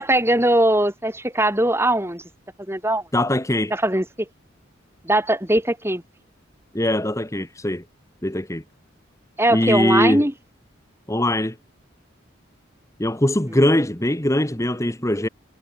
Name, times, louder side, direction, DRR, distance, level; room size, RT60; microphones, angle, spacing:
voice 1, 0.0-2.2 2.7-3.0 3.7-4.0 5.0-6.0 9.4-10.3 13.5-13.6, right 1 dB, 10° right, 6.2 m, -20 dB
voice 2, 3.1-3.7 6.7-7.8 8.2-8.6 9.5-10.2 11.1-11.6 13.0-15.3, left 1 dB, 15° left, 1.5 m, -21 dB
head